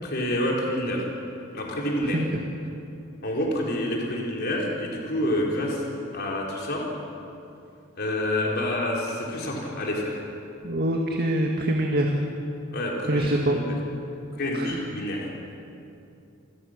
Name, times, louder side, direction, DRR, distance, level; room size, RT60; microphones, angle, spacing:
voice 1, 0.0-1.0 1.5-2.2 3.2-5.9 6.1-6.8 8.0-10.2 12.7-13.7 14.4-15.2, left 1 dB, 50° left, -2 dB, 4.1 m, -28 dB
voice 2, 10.6-12.2 13.1-13.6 14.5-14.8, right 1 dB, 50° right, 1 dB, 1.8 m, -24 dB
29.0 x 20.0 x 6.6 m, 2.7 s
head